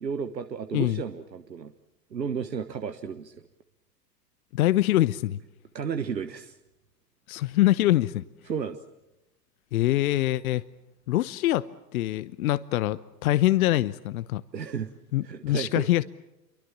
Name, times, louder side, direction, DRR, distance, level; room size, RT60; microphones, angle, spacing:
voice 1, 0.0-1.7 2.1-3.4 5.7-6.6 8.4-8.8 14.5-14.9 15.2-15.9, right 6 dB, 85° right, 9 dB, 1.4 m, -33 dB
voice 2, 4.5-5.4 7.3-8.2 9.7-10.6 11.1-11.7 11.9-14.4 15.1-16.0, left 15 dB, 60° left, 15 dB, 0.9 m, -24 dB
28.5 x 24.0 x 7.4 m, 0.96 s
figure-of-eight pair, 95°, 49 cm